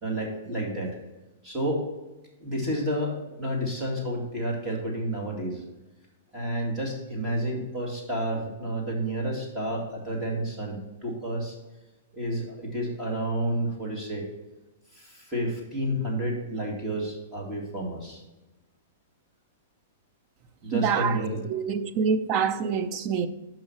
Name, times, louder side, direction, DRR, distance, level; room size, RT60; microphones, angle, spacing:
voice 1, 0.0-0.9 1.4-1.9 2.4-5.6 6.3-11.6 12.1-14.2 14.9-18.2 20.6-21.4, right 1 dB, 10° right, 2.1 m, -30 dB
voice 2, 20.7-23.3, right 6 dB, 30° right, 0.5 m, -26 dB
5.8 x 5.5 x 5.6 m
hypercardioid pair, 155°, 0 cm